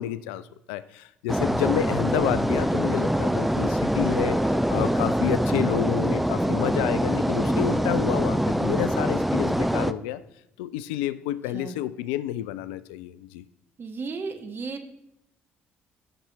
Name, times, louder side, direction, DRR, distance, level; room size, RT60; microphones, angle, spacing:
voice 1, 0.0-10.2 10.6-13.4, left 13 dB, 70° left, 15 dB, 0.3 m, -29 dB
sound 1, 1.3-9.9, equal, ahead, 0.4 m, -24 dB
Wind instrument woodwind instrument, 4.7-5.9 6.4-10.2, right 4 dB, 90° right, 0.7 m, -47 dB
voice 2, 13.8-14.9, right 4 dB, 35° right, 6 dB, 1.2 m, -35 dB
12.0 x 5.7 x 3.5 m, 0.83 s
figure-of-eight pair, 50°, 6 cm